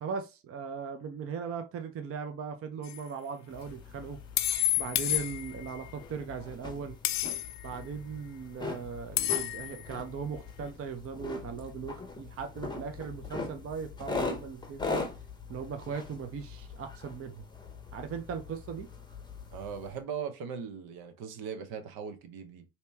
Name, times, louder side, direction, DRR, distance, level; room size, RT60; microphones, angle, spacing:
voice 1, 0.0-4.2 4.8-7.0 7.6-15.0 15.5-17.4 17.9-18.9, right 6 dB, 35° right, 0.6 m, -38 dB
sound 1, 2.8-3.0 4.4-5.8 7.0-7.7 9.2-9.8, left 15 dB, 45° left, 0.5 m, -30 dB
sound 2, 3.5-20.0, left 3 dB, 10° left, 0.8 m, -41 dB
voice 2, 19.5-22.6, right 6 dB, 65° right, 0.9 m, -39 dB
2.9 x 2.8 x 3.4 m
supercardioid pair, 100°, 41 cm